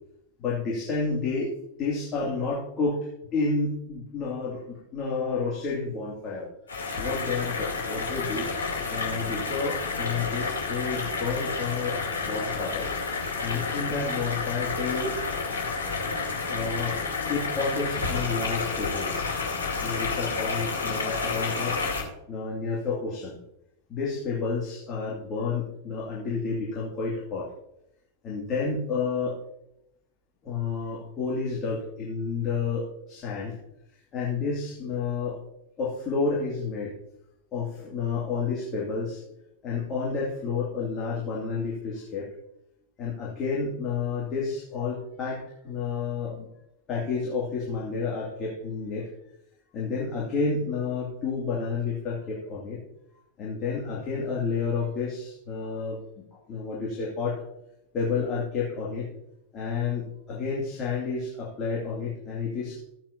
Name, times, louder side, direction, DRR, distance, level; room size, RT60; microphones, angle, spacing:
voice 1, 0.4-1.5 1.8-6.5 7.0-8.5 8.9-12.9 13.4-15.2 16.5-17.0 17.3-19.4 19.8-21.8 22.3-23.4 23.9-27.5 28.2-29.4 30.4-33.6 34.1-35.4 35.8-36.9 37.5-39.2 39.6-42.3 43.0-46.5 46.9-49.1 49.7-52.8 53.4-56.0 56.5-57.4 57.9-59.1 59.5-62.8, left 4 dB, 30° left, -5 dB, 2.5 m, -30 dB
sound 1, 6.7-22.0, left 4 dB, 70° left, 2.5 m, -30 dB
13.5 x 8.9 x 2.8 m, 0.83 s
figure-of-eight pair, 90°, 0 cm